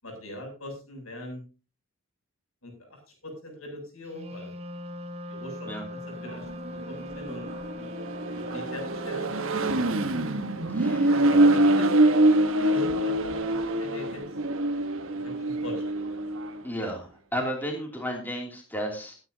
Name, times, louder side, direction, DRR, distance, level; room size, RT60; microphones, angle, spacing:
voice 1, 0.0-1.4 2.6-4.5 5.3-6.5 6.9-8.0 8.2-9.3 11.3-12.0 12.6-14.2 15.1-16.0, left 1 dB, 75° left, 2 dB, 7.8 m, -40 dB
Wind instrument woodwind instrument, 4.1-11.9, left 1 dB, 30° right, 1.4 m, -41 dB
Accelerating revving vroom, 6.2-16.6, right 1 dB, 65° right, 1.3 m, -25 dB
voice 2, 10.7-11.2 16.6-19.1, equal, 10° left, 1 dB, 2.8 m, -33 dB
22.0 x 9.6 x 2.8 m, 0.31 s
head